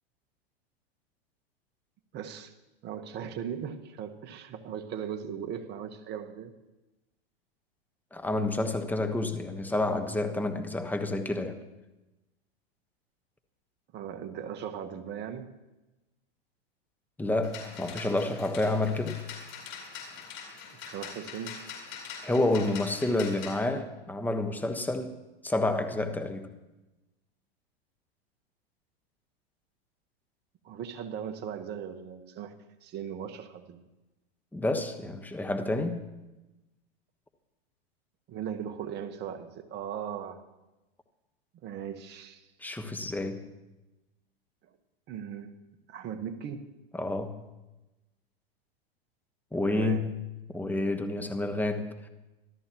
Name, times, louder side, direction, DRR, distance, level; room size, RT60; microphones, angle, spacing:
voice 1, 2.1-2.5 2.8-6.5 13.9-15.5 20.7-21.6 30.6-32.5 32.8-33.8 38.3-40.5 41.6-42.5 45.1-45.5 45.9-46.7 49.7-50.1, right 8 dB, 35° right, 8 dB, 1.4 m, -38 dB
voice 2, 8.1-11.6 17.2-19.2 22.2-25.1 25.4-26.5 34.5-36.0 42.6-43.4 46.9-47.4 49.5-50.1 50.5-52.1, left 2 dB, 5° left, 6 dB, 1.2 m, -29 dB
sound 1, 17.4-23.6, left 6 dB, 40° left, 5.0 m, -43 dB
25.5 x 13.0 x 3.1 m, 1.0 s
hypercardioid pair, 120°, 31 cm